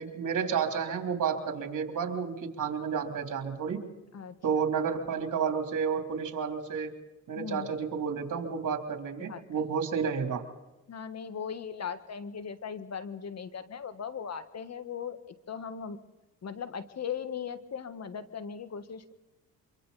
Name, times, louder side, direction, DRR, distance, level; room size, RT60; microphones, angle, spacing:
voice 1, 0.0-3.8 4.4-6.9 7.3-10.4, right 6 dB, 60° right, 4 dB, 3.4 m, -31 dB
voice 2, 4.1-4.7 7.3-7.7 9.3-9.7 10.9-15.2 15.5-16.0 16.4-19.1, left 7 dB, 50° left, 11 dB, 1.6 m, -38 dB
25.0 x 25.0 x 4.2 m, 1.1 s
supercardioid pair, 70°, 34 cm